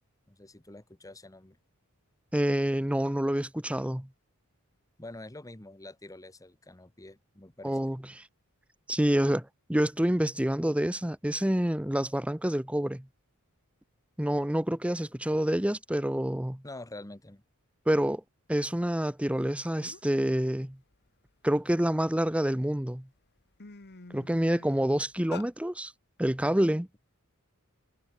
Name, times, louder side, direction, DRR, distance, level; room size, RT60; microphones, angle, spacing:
voice 1, 0.3-1.6 5.0-7.9 16.6-17.4, left 2 dB, 15° left, 1.4 m, -46 dB
voice 2, 2.3-4.1 7.6-8.0 8.9-13.0 14.2-16.6 17.9-18.2 18.5-20.8 21.4-23.1 24.1-25.9 26.2-26.9, equal, 5° right, 0.9 m, -27 dB
sound 1, 19.4-19.5 19.8-20.2 20.7-22.2 22.8-23.0 23.3-25.5, left 4 dB, 50° left, 1.4 m, -47 dB
head